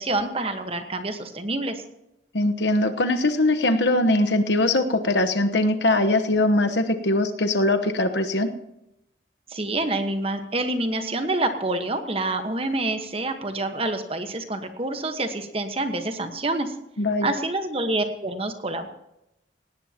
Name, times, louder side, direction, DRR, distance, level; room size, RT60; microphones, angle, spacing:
voice 1, 0.0-1.8 9.5-16.7 17.2-18.9, right 2 dB, 30° right, 7 dB, 1.3 m, -27 dB
voice 2, 2.3-8.5 17.0-17.3, left 2 dB, 75° left, 7 dB, 1.1 m, -21 dB
18.0 x 17.5 x 2.9 m, 0.87 s
head